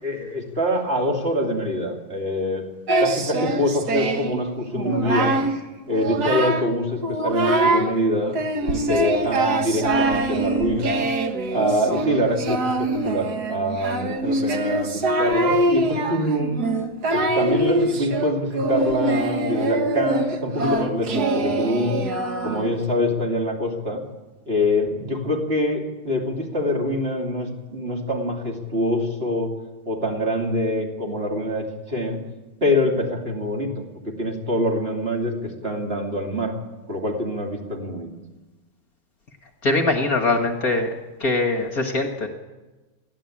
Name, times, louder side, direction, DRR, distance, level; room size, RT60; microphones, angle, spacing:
voice 1, 0.0-2.6 3.0-5.4 5.9-8.4 8.7-11.0 11.5-16.6 17.1-22.0 22.4-24.0 24.5-29.5 29.9-32.2 32.6-36.6 36.9-38.1, left 1 dB, 30° right, 1 dB, 2.9 m, -25 dB
Singing, 2.9-4.4 4.7-5.5 5.9-6.7 7.0-7.9 8.3-22.8, right 2 dB, 55° right, 1.9 m, -23 dB
voice 2, 39.6-40.9 41.2-42.3, left 2 dB, 45° left, 5 dB, 1.9 m, -22 dB
30.0 x 11.5 x 8.7 m, 1.2 s
omnidirectional pair, 2.2 m